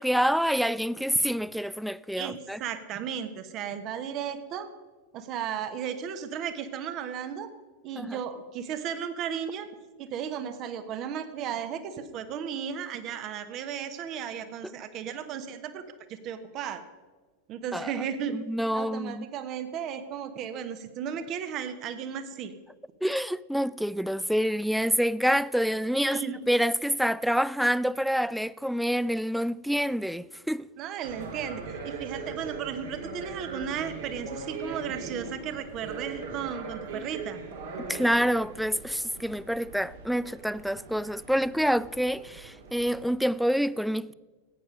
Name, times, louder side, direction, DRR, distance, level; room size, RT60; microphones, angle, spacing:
voice 1, 0.0-2.6 8.0-8.2 14.6-14.7 17.7-17.9 18.3-19.3 23.0-30.7 37.8-44.1, equal, ahead, 0.3 m, -27 dB
voice 2, 2.2-4.7 5.1-7.5 7.8-9.7 10.0-15.8 16.1-16.8 17.5-18.4 18.7-22.5 26.0-26.4 30.8-37.4, right 8 dB, 35° right, 1.2 m, -35 dB
sound 1, 31.0-43.1, right 4 dB, 60° right, 2.5 m, -40 dB
15.0 x 9.6 x 5.2 m
figure-of-eight pair, 90°, 0 cm